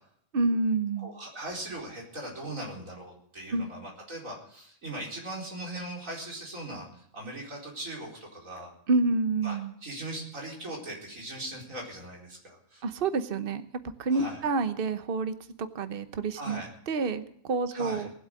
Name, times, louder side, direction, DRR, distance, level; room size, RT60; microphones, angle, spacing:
voice 1, 0.3-1.1 3.5-3.7 8.9-9.7 12.8-13.6 14.0-18.1, right 3 dB, 45° right, 11 dB, 1.1 m, -28 dB
voice 2, 1.0-8.7 9.4-12.8 14.1-14.4 16.3-16.7 17.7-18.1, right 1 dB, 75° right, -1 dB, 4.9 m, -40 dB
20.0 x 7.9 x 7.7 m, 0.67 s
omnidirectional pair, 1.4 m